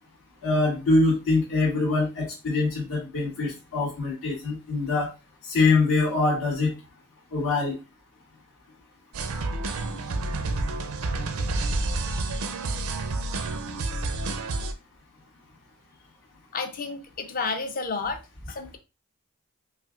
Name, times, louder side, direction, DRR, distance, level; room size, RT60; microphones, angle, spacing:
voice 1, 0.4-5.1 5.5-6.7 7.3-7.7, left 3 dB, 75° left, -8 dB, 2.1 m, -24 dB
sound 1, 9.1-14.7, right 2 dB, 75° right, 0.5 m, -29 dB
voice 2, 16.5-18.2 18.5-18.8, left 4 dB, 40° left, 7 dB, 0.5 m, -31 dB
5.6 x 2.5 x 2.4 m, 0.27 s
head